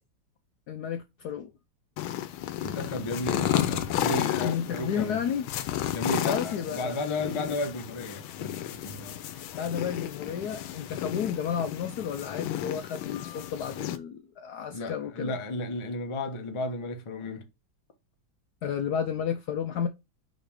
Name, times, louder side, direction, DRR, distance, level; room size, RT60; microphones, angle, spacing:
voice 1, 0.7-1.5 4.4-5.5 6.2-7.0 9.3-15.3 18.6-19.9, left 8 dB, 75° left, 0.9 m, -32 dB
sound 1, 2.0-14.0, left 12 dB, 90° left, 1.5 m, -33 dB
voice 2, 2.6-5.2 5.9-9.1 14.7-17.5, left 2 dB, 30° left, 0.5 m, -33 dB
5.2 x 4.0 x 4.7 m
omnidirectional pair, 2.2 m